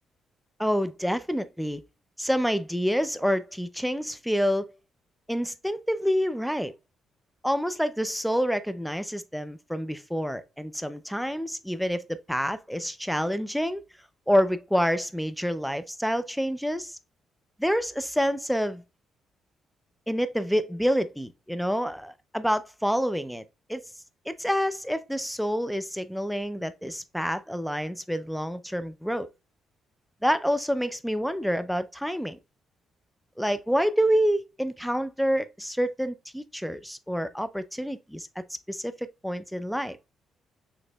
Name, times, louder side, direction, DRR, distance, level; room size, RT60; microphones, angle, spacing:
voice 1, 0.6-1.8 2.2-4.7 5.3-6.7 7.4-13.8 14.3-17.0 17.6-18.8 20.1-23.4 23.7-23.8 24.3-29.3 30.2-32.4 33.4-38.3 38.7-40.0, equal, ahead, 0.5 m, -27 dB
6.4 x 3.0 x 2.2 m
cardioid pair, 90°, 0 cm